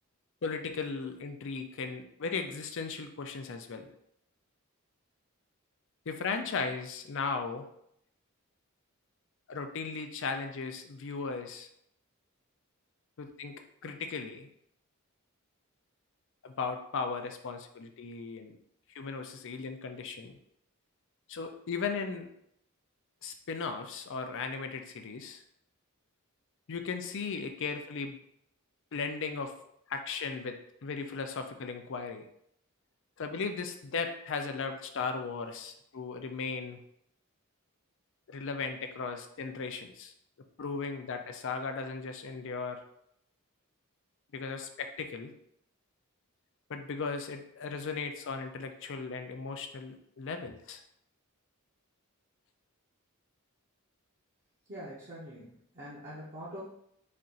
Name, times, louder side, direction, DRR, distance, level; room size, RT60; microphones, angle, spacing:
voice 1, 0.4-3.9 6.1-7.7 9.5-11.7 13.2-14.5 16.4-18.5 18.9-20.3 21.3-22.3 23.2-25.4 26.7-28.2 28.9-29.5 29.9-32.2 33.2-36.8 38.3-40.1 40.6-42.8 44.3-45.3 46.7-50.8, left 4 dB, 60° left, 6 dB, 0.5 m, -37 dB
voice 2, 54.7-56.6, equal, 40° right, -8 dB, 0.9 m, -44 dB
4.3 x 2.5 x 3.8 m, 0.72 s
head